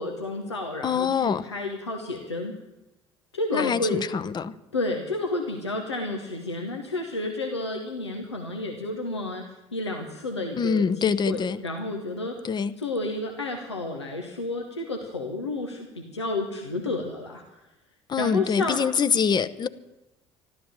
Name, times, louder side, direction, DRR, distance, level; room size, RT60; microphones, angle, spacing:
voice 1, 0.0-2.5 3.3-4.1 4.7-9.4 9.7-12.4 12.8-17.7 18.2-18.9, left 2 dB, 85° left, 3 dB, 1.1 m, -31 dB
voice 2, 0.8-1.4 3.5-4.5 10.6-11.6 12.4-12.7 18.1-19.7, left 6 dB, 30° left, 14 dB, 0.8 m, -24 dB
13.0 x 12.5 x 7.7 m, 0.97 s
figure-of-eight pair, 55°, 14 cm